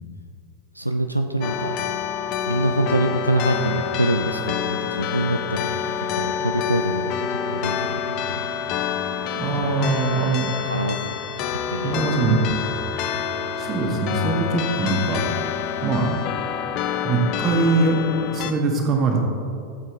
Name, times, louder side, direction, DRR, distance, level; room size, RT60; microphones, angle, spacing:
voice 1, 0.7-1.8 2.5-8.5 9.6-9.7 10.6-11.1 11.5-12.3, right 1 dB, 90° right, 6 dB, 0.4 m, -25 dB
sound 1, 1.4-18.5, left 8 dB, 40° left, 0.6 m, -27 dB
sound 2, 2.5-16.3, right 5 dB, 50° right, 1.1 m, -43 dB
voice 2, 9.4-10.5 11.8-12.5 13.6-15.2 15.8-16.1 17.0-18.0 18.3-19.2, right 3 dB, 30° right, 1 dB, 1.7 m, -22 dB
14.5 x 7.8 x 3.2 m, 2.5 s
figure-of-eight pair, 90°, 0 cm